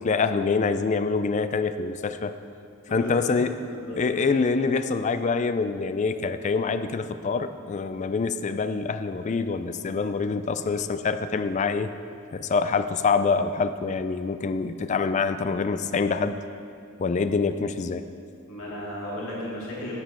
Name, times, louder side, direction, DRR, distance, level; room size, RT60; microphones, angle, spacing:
voice 1, 0.0-2.3 2.9-3.6 4.0-11.9 12.3-16.4 17.0-18.0, left 4 dB, 35° left, 10 dB, 0.3 m, -25 dB
voice 2, 2.9-3.4 3.6-4.0 18.5-20.0, equal, 75° left, -6 dB, 2.5 m, -35 dB
9.6 x 8.2 x 4.4 m, 2.4 s
head